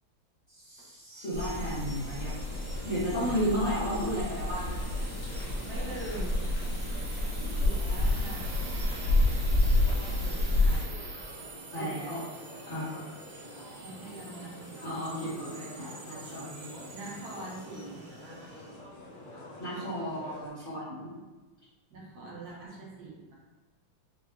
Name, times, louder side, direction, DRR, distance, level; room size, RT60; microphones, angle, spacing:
voice 1, 0.6-2.3 2.8-4.8 11.7-12.2 12.7-12.9 14.8-16.9 19.6-21.1, equal, 35° left, -11 dB, 0.8 m, -33 dB
sound 1, 1.1-18.8, right 4 dB, 90° right, 1.4 m, -47 dB
sound 2, 1.3-10.8, left 2 dB, 70° left, 1.5 m, -29 dB
sound 3, 2.2-20.5, left 1 dB, 85° left, 1.5 m, -48 dB
voice 2, 5.6-6.4 7.6-9.0 10.0-11.1 11.6-12.0 13.8-16.0 16.9-18.5 21.9-23.3, right 2 dB, 60° right, -4 dB, 1.1 m, -44 dB
4.7 x 2.1 x 2.3 m, 1.2 s
omnidirectional pair, 2.2 m